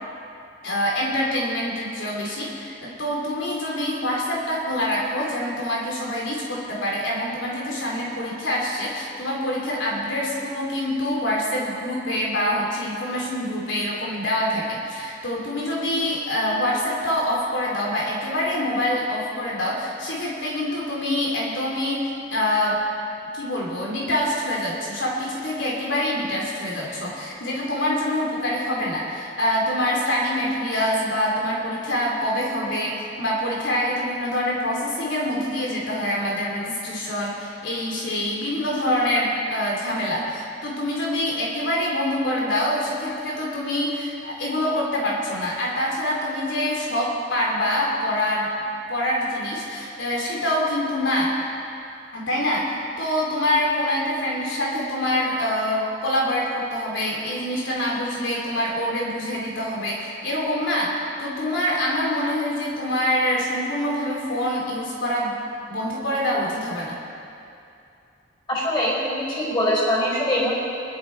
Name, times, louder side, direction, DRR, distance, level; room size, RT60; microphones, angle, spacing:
voice 1, 0.6-22.8 23.3-48.5 48.9-51.4 52.1-65.4 65.7-66.9, left 1 dB, 85° left, -3 dB, 3.2 m, -25 dB
voice 2, 68.5-70.6, left 1 dB, 25° left, -4 dB, 5.0 m, -23 dB
24.5 x 12.5 x 4.6 m, 2.6 s
head